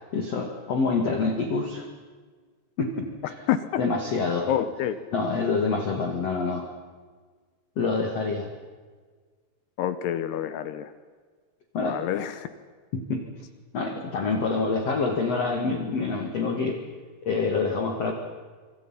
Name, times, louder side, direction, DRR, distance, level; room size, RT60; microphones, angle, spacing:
voice 1, 0.1-1.9 2.8-3.3 3.8-4.5 5.1-6.7 7.8-8.5 11.7-12.0 12.9-13.2 13.7-16.8 17.2-18.1, left 4 dB, 45° left, 4 dB, 2.3 m, -26 dB
voice 2, 3.5-3.8 4.5-5.0 9.8-10.9 11.9-12.5, left 10 dB, 75° left, 12 dB, 2.7 m, -27 dB
26.5 x 25.5 x 5.7 m, 1.5 s
omnidirectional pair, 5.4 m